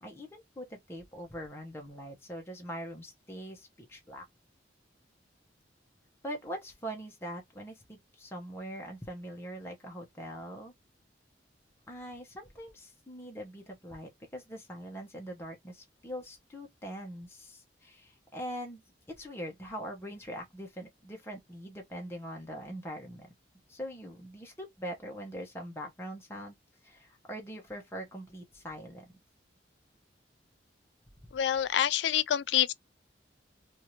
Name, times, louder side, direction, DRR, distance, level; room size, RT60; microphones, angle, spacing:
voice 1, 0.0-4.2 6.2-10.7 11.9-18.8 19.1-23.3 23.7-26.6 26.8-29.0, equal, 15° left, 0.7 m, -42 dB
voice 2, 31.3-32.7, left 10 dB, 70° left, 0.3 m, -27 dB
2.7 x 2.4 x 2.9 m
head